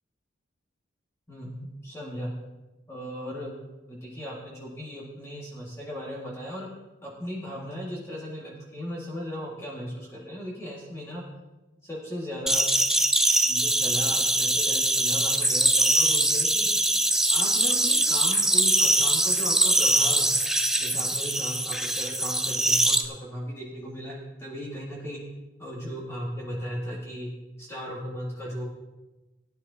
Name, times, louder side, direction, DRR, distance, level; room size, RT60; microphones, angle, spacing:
voice 1, 1.3-2.3 2.9-3.5 3.9-6.7 7.0-11.2 11.8-12.7 13.5-16.7 17.3-20.3 20.8-25.2 25.6-27.3 27.6-28.6, equal, 15° left, -4 dB, 1.9 m, -37 dB
sound 1, 12.5-23.0, right 1 dB, 5° right, 0.4 m, -23 dB
17.0 x 9.8 x 2.8 m, 1.1 s
head